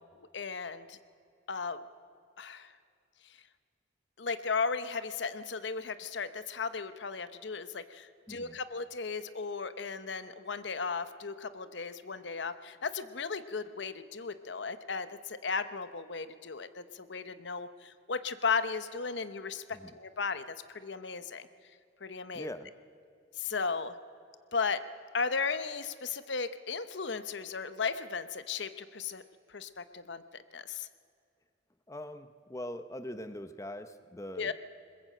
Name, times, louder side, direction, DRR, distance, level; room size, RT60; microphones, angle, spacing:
voice 1, 0.3-1.0 1.5-1.8 2.4-2.7 4.2-21.5 22.0-22.5 23.4-23.9 24.5-24.8 25.1-29.2 29.5-30.9 34.4-34.5, left 5 dB, 65° left, 12 dB, 0.9 m, -35 dB
voice 2, 8.3-8.6 19.7-19.9 22.3-22.7 31.9-34.5, left 1 dB, 15° left, 10 dB, 0.8 m, -42 dB
21.5 x 21.0 x 7.7 m, 2.4 s
head